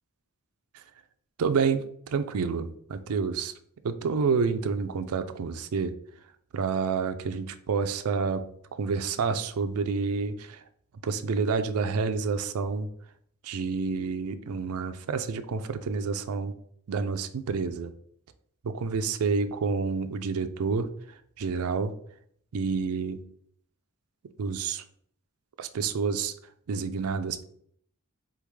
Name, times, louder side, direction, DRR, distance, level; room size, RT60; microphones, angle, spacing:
voice 1, 1.4-3.5 3.8-6.0 6.5-10.6 11.0-12.9 13.4-16.5 16.9-17.9 18.6-20.9 21.4-21.9 22.5-23.2 24.4-24.8 25.6-26.3 26.7-27.4, right 5 dB, 70° right, 10 dB, 0.4 m, -29 dB
4.2 x 3.6 x 3.1 m, 0.65 s
head